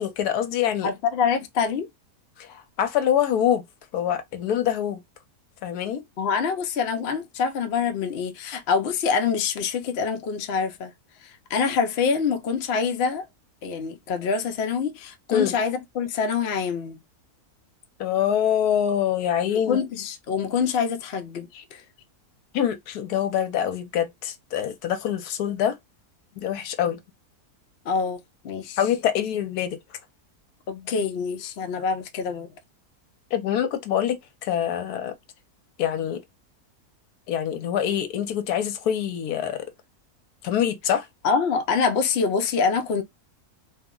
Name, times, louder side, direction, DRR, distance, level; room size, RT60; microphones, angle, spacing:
voice 1, 0.0-0.9 2.4-3.6 3.9-5.0 5.6-6.0 15.3-15.5 18.0-19.8 21.5-21.6 22.5-25.8 26.4-27.0 28.8-29.8 33.3-35.1 35.8-36.2 37.3-39.7 40.4-41.1, left 9 dB, 80° left, 1.1 m, -25 dB
voice 2, 0.8-1.9 6.2-10.9 11.2-13.3 13.6-17.0 19.7-21.8 27.9-28.2 28.4-28.8 30.7-32.5 41.2-43.0, left 5 dB, 60° left, 0.7 m, -25 dB
2.7 x 2.1 x 3.6 m
omnidirectional pair, 1.6 m